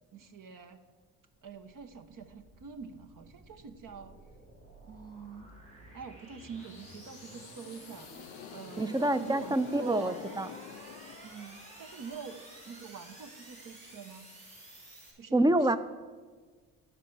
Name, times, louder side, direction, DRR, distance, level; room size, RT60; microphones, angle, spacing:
voice 1, 0.1-0.8 1.4-4.2 4.8-5.5 5.9-10.2 11.2-12.4 12.6-14.3 15.2-15.7, right 5 dB, 50° right, 8 dB, 0.9 m, -45 dB
sound 1, 1.3-15.1, right 1 dB, 85° right, 2.4 m, -51 dB
sound 2, 6.6-11.7, left 13 dB, 70° left, 0.5 m, -48 dB
voice 2, 8.8-10.5 15.3-15.8, right 1 dB, 10° right, 14 dB, 0.5 m, -27 dB
11.5 x 4.5 x 7.7 m, 1.5 s
hypercardioid pair, 50°, 40 cm